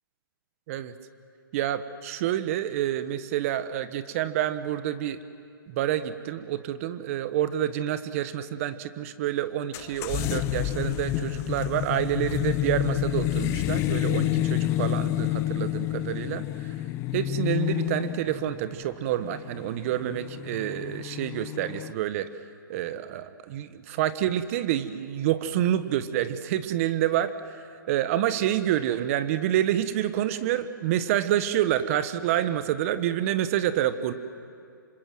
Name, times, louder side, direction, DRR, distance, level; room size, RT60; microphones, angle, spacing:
voice 1, 1.5-5.2 5.7-16.7 17.1-22.3 22.7-34.1, right 12 dB, 40° right, 12 dB, 1.3 m, -28 dB
sound 1, 9.7-21.9, left 14 dB, 20° left, 0.6 m, -29 dB
27.5 x 26.0 x 7.7 m, 2.4 s
hypercardioid pair, 140°, 12 cm